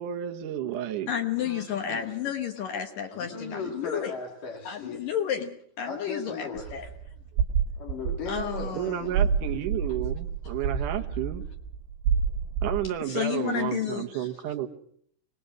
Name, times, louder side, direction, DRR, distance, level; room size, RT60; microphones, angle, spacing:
voice 1, 0.0-1.1 8.7-11.4 12.6-14.7, right 11 dB, 70° right, 5 dB, 2.0 m, -31 dB
voice 2, 1.1-4.1 4.6-6.9 8.3-9.3 13.0-14.3, left 9 dB, 70° left, 5 dB, 2.2 m, -32 dB
voice 3, 3.1-5.1 5.8-6.8 7.8-8.8, left 4 dB, 50° left, 1 dB, 3.9 m, -37 dB
sound 1, 6.6-12.9, right 7 dB, 90° right, 4.6 m, -29 dB
23.5 x 19.5 x 6.3 m, 0.63 s
omnidirectional pair, 5.5 m